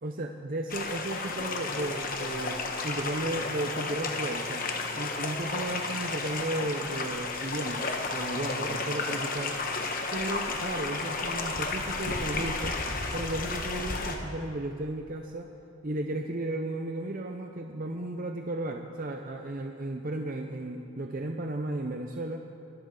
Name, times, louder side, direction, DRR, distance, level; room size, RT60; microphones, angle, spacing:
voice 1, 0.0-4.6 4.9-9.6 10.1-12.8 13.1-15.5 15.8-22.4, right 1 dB, 40° right, 4 dB, 0.6 m, -34 dB
sound 1, 0.7-14.2, left 3 dB, 40° left, 1.2 m, -32 dB
24.0 x 13.0 x 3.9 m, 2.8 s
head